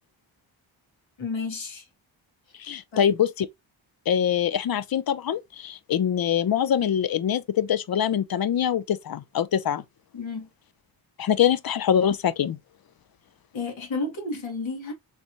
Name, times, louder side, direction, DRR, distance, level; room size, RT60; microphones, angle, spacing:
voice 1, 1.2-1.8 2.9-3.2 10.1-10.5 13.5-14.9, left 3 dB, 70° left, 1.9 m, -32 dB
voice 2, 2.6-3.5 4.1-9.8 11.2-12.6, left 9 dB, 50° left, 0.6 m, -24 dB
3.2 x 3.2 x 2.7 m
cardioid pair, 55°, 48 cm